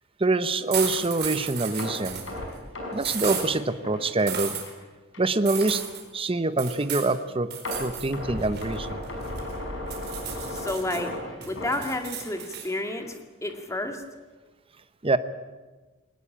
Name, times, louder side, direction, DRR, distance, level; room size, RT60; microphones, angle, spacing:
voice 1, 0.2-2.3 2.9-4.5 5.2-5.8 6.1-7.5 7.8-9.0 15.0-15.2, right 2 dB, 30° right, 12 dB, 0.9 m, -25 dB
sound 1, 0.7-2.3 3.0-3.5 4.3-4.6 5.5-6.0 6.6-7.1 7.5-8.1 8.4-9.5 9.9-11.0 11.4-12.7, right 9 dB, 55° right, 4.7 m, -33 dB
sound 2, 1.8-4.8 5.1-5.3 5.8-5.9 7.6-12.6 12.8-13.1 13.5-13.6, left 1 dB, 70° left, 5.6 m, -35 dB
voice 2, 10.5-11.1 11.5-14.0, left 1 dB, 15° left, 5 dB, 2.2 m, -31 dB
20.5 x 19.0 x 8.7 m, 1.3 s
head